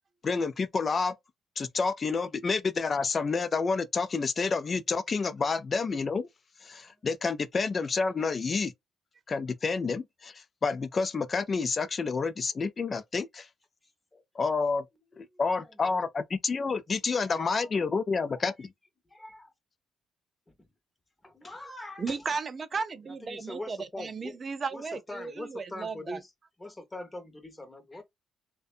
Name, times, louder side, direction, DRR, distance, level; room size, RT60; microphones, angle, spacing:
voice 1, 0.2-1.1 1.6-6.3 6.6-8.7 9.3-13.5 14.4-14.8 15.2-18.7, left 4 dB, 40° left, 0.4 m, -29 dB
voice 2, 15.3-16.1 17.2-17.7 19.1-19.5 20.6-20.7 21.2-22.3 23.1-24.4 24.7-26.3 26.6-28.0, left 1 dB, 15° left, 0.8 m, -43 dB
voice 3, 22.0-26.2, right 5 dB, 40° right, 0.4 m, -35 dB
2.6 x 2.2 x 2.4 m
cardioid pair, 90°, 0 cm